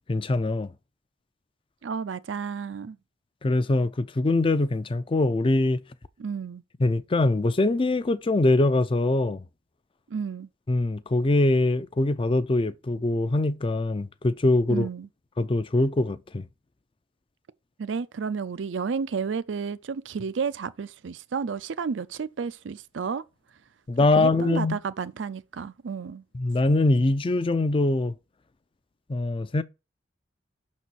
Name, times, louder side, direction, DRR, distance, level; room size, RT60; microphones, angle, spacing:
voice 1, 0.1-0.7 3.4-5.8 6.8-9.4 10.7-14.9 15.4-16.5 23.9-24.8 26.3-28.2 29.1-29.6, left 2 dB, 30° left, 0.5 m, -23 dB
voice 2, 1.8-3.0 6.2-6.6 10.1-10.5 14.7-15.1 17.8-23.2 24.2-26.2, right 5 dB, 75° right, 0.5 m, -31 dB
5.9 x 4.2 x 6.2 m
head